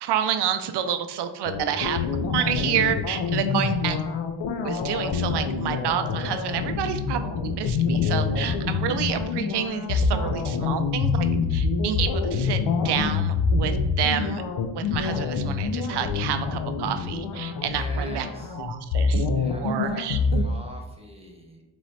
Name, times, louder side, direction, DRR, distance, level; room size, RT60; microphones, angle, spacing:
voice 1, 0.0-4.0 4.6-12.6 12.8-14.4 14.7-18.3 18.6-19.3 19.6-20.2, right 9 dB, 65° right, 9 dB, 0.5 m, -29 dB
sound 1, 1.4-20.4, left 4 dB, 85° left, 0.6 m, -26 dB
voice 2, 17.6-18.6 19.3-21.6, equal, 15° right, 1 dB, 1.1 m, -44 dB
3.1 x 3.1 x 4.0 m, 1.0 s
cardioid pair, 55°, 44 cm